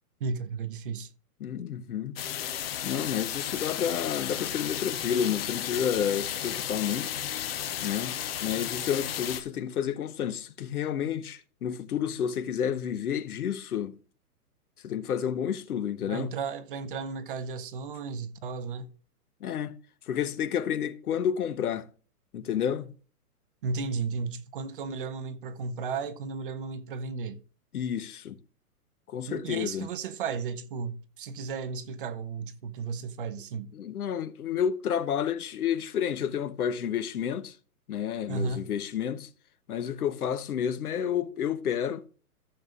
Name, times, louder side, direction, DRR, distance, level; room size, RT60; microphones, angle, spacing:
voice 1, 0.2-1.1 16.1-18.9 23.6-27.4 29.3-33.7 38.3-38.7, right 5 dB, 35° right, 0.7 m, -34 dB
voice 2, 1.4-2.2 2.8-7.1 7.8-8.1 8.4-13.9 14.8-16.3 19.4-19.7 20.1-21.9 22.3-22.9 27.7-28.4 29.1-29.9 33.7-37.5 37.9-39.3 39.7-42.0, left 8 dB, 70° left, 1.2 m, -30 dB
sound 1, 2.2-9.4, left 10 dB, 40° left, 0.9 m, -33 dB
14.5 x 6.5 x 2.5 m
hypercardioid pair, 155°, 46 cm